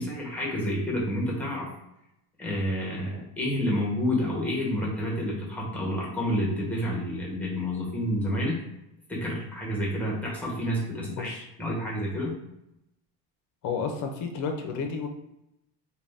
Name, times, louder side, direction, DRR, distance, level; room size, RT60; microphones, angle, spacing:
voice 1, 0.0-1.7 2.4-8.6 9.1-11.3 11.6-12.3, equal, 5° left, -4 dB, 0.8 m, -29 dB
voice 2, 10.9-11.5 13.6-15.1, left 5 dB, 50° left, 5 dB, 0.5 m, -32 dB
2.4 x 2.3 x 3.3 m, 0.85 s
cardioid pair, 150°, 40 cm